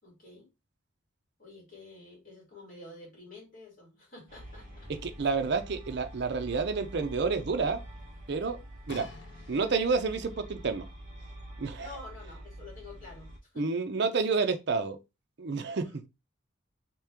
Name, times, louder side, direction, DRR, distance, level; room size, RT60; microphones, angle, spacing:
voice 1, 0.0-0.5 1.4-4.9 11.8-13.7 15.8-16.0, left 2 dB, 40° left, 2.2 m, -49 dB
sound 1, 4.3-13.4, right 1 dB, 40° right, 1.4 m, -46 dB
voice 2, 5.0-7.8 8.3-8.6 8.9-9.1 9.5-10.9 11.6-11.9 13.6-15.0 15.4-15.9, right 4 dB, 55° right, 0.5 m, -29 dB
sound 2, 8.9-10.2 10.9-11.0, left 3 dB, 60° left, 0.6 m, -48 dB
3.3 x 3.0 x 3.6 m
head